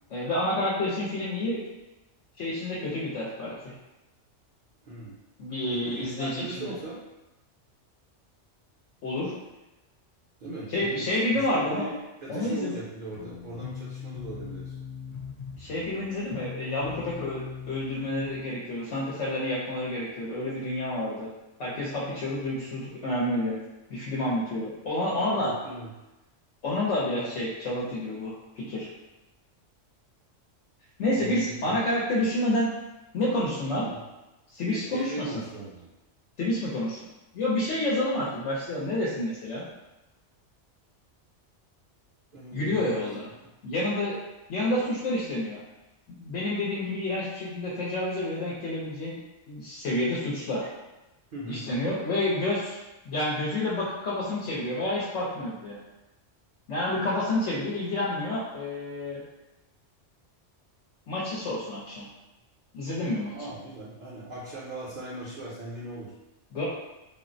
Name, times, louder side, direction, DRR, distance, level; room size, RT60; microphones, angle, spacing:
voice 1, 0.1-1.6 2.4-3.7 5.4-6.7 9.0-9.3 10.7-11.9 12.3-12.8 15.6-21.3 21.6-23.6 23.9-25.5 26.6-28.9 31.0-32.7 33.1-33.8 34.5-35.4 36.4-37.0 37.3-39.6 42.5-43.3 43.6-44.2 44.5-45.6 46.1-49.2 49.5-50.7 51.5-52.8 53.0-55.8 56.7-59.2 61.1-62.0 62.7-63.3 66.5-66.7, left 1 dB, 75° left, -7 dB, 1.0 m, -29 dB
voice 2, 5.7-7.0 10.4-14.7 24.9-25.9 31.1-31.9 33.8-34.0 34.6-35.9 42.3-43.1 51.3-51.7 63.3-66.1, right 1 dB, 45° right, -9 dB, 0.7 m, -39 dB
sound 1, 13.1-18.4, left 7 dB, 55° left, 0.6 m, -40 dB
3.7 x 2.0 x 2.6 m, 1.0 s
omnidirectional pair, 1.3 m